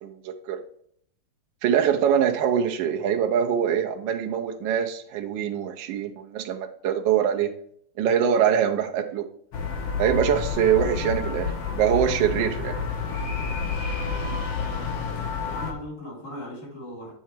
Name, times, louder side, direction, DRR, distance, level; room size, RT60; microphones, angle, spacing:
voice 1, 0.0-0.6 1.6-7.5 8.0-9.3 10.0-12.8, right 8 dB, 70° right, 4 dB, 1.2 m, -24 dB
sound 1, 9.5-15.7, left 5 dB, 65° left, 1.7 m, -29 dB
voice 2, 14.5-14.9 15.4-17.1, left 1 dB, 80° left, -3 dB, 3.8 m, -39 dB
8.2 x 3.7 x 4.4 m, 0.64 s
omnidirectional pair, 2.3 m